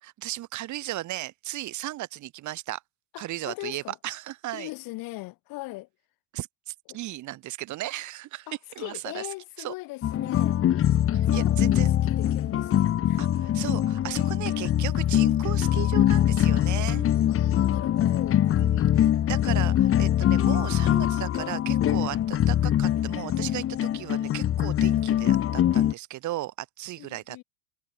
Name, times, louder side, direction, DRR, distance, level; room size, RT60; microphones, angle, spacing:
voice 1, 0.0-2.8 3.2-4.7 6.3-8.5 8.8-9.3 9.6-9.7 11.1-11.9 13.2-17.1 18.6-27.4, right 15 dB, 40° right, 5.8 m, -36 dB
voice 2, 3.1-4.0 4.5-5.9 6.9-7.0 8.5-10.6 11.3-13.2 17.3-18.9 27.0-27.4, left 22 dB, 45° left, 6.9 m, -40 dB
sound 1, 10.0-25.9, left 11 dB, 30° left, 2.6 m, -23 dB
supercardioid pair, 135°, 46 cm